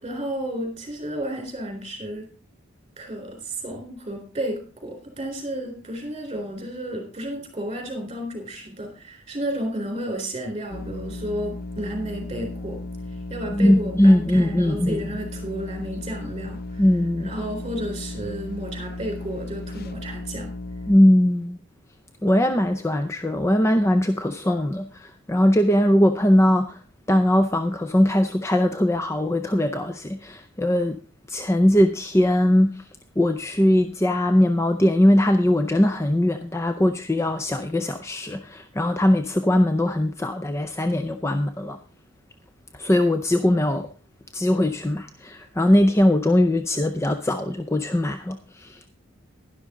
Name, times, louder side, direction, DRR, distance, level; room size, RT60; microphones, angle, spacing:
voice 1, 0.0-2.3 3.0-12.8 13.1-16.8 17.2-20.5, right 1 dB, 25° right, 2 dB, 3.7 m, -32 dB
sound 1, 10.7-21.0, left 2 dB, 45° left, 0.7 m, -35 dB
voice 2, 13.5-15.0 16.8-17.3 20.9-21.6 22.2-26.8 27.1-31.0 31.3-32.8 33.2-41.8 42.7-43.9 44.3-48.8, left 1 dB, 15° left, 8 dB, 0.5 m, -20 dB
11.5 x 11.5 x 3.7 m, 0.36 s
head